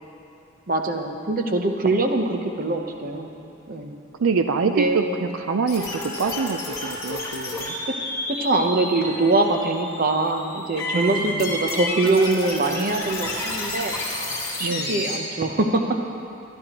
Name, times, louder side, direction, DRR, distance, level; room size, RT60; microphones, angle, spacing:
voice 1, 0.7-3.3 3.7-3.9 4.6-5.3 7.9-8.0 8.3-15.8, right 2 dB, 45° right, 4 dB, 0.8 m, -23 dB
voice 2, 4.2-7.7 10.9-11.5 14.6-15.1, right 5 dB, 85° right, 7 dB, 0.5 m, -26 dB
sound 1, 5.7-15.2, left 2 dB, 15° left, 1.8 m, -31 dB
22.0 x 11.5 x 3.0 m, 2.7 s
head